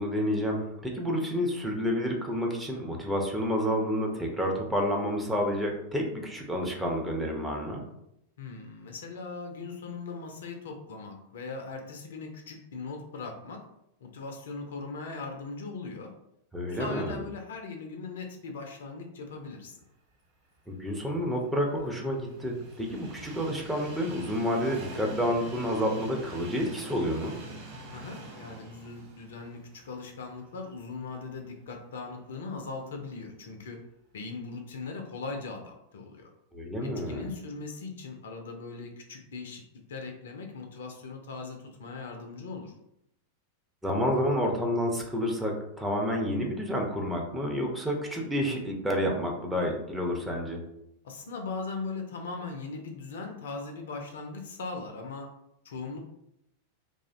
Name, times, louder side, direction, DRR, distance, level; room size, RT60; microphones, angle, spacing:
voice 1, 0.0-7.8 16.5-17.2 20.7-27.4 36.5-37.2 43.8-50.6, equal, 5° right, 0 dB, 0.5 m, -29 dB
voice 2, 8.4-13.6 14.0-16.1 16.7-19.8 27.9-33.8 34.1-36.3 36.8-39.6 39.9-42.7 51.0-55.3 55.6-56.0, left 4 dB, 60° left, 4 dB, 0.4 m, -39 dB
Train, 20.8-31.0 31.4-31.5 32.6-32.7, right 2 dB, 45° right, 0.8 m, -45 dB
2.4 x 2.0 x 2.5 m, 0.79 s
figure-of-eight pair, 90°, 0 cm